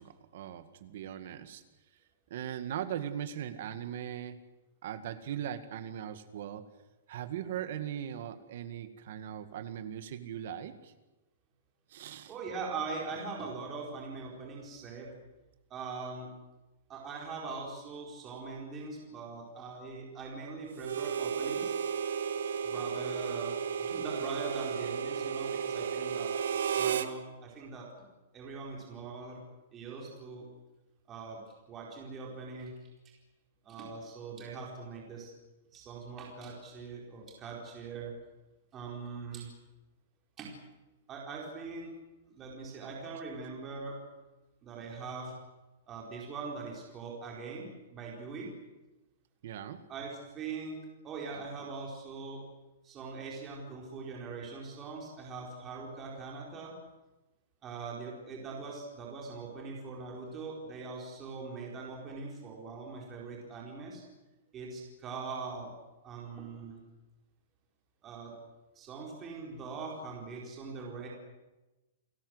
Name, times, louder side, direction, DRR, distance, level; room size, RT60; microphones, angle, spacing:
voice 1, 0.0-1.6 2.3-4.4 4.8-6.7 7.1-10.9 11.9-12.3 49.4-49.8, right 10 dB, 45° right, 11 dB, 1.9 m, -39 dB
voice 2, 12.3-15.1 15.7-16.3 16.9-21.7 22.7-23.5 23.8-26.3 26.7-27.9 28.3-29.4 29.7-30.5 31.1-31.4 31.7-32.7 33.6-35.3 35.7-38.1 38.7-39.5 40.4-40.5 41.1-41.9 42.3-44.0 44.6-45.3 45.9-48.5 49.9-50.8 51.0-52.4 52.8-56.7 57.6-64.0 64.5-65.7 66.0-66.8 68.0-68.3 68.7-71.1, right 4 dB, 15° right, -2 dB, 4.6 m, -42 dB
Harmonica, 20.8-27.1, right 7 dB, 70° right, 1.7 m, -33 dB
30.0 x 17.5 x 8.1 m, 1.1 s
hypercardioid pair, 180°, 0 cm